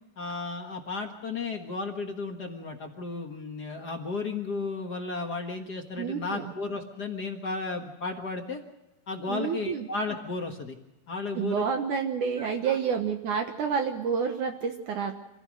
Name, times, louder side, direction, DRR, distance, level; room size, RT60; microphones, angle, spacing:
voice 1, 0.2-8.6 9.1-10.8 11.1-11.7 12.4-12.8, left 3 dB, 55° left, 3 dB, 1.1 m, -34 dB
voice 2, 6.0-6.5 9.3-9.9 11.3-15.1, right 6 dB, 65° right, 4 dB, 2.5 m, -29 dB
26.5 x 16.0 x 6.4 m, 0.95 s
omnidirectional pair, 4.2 m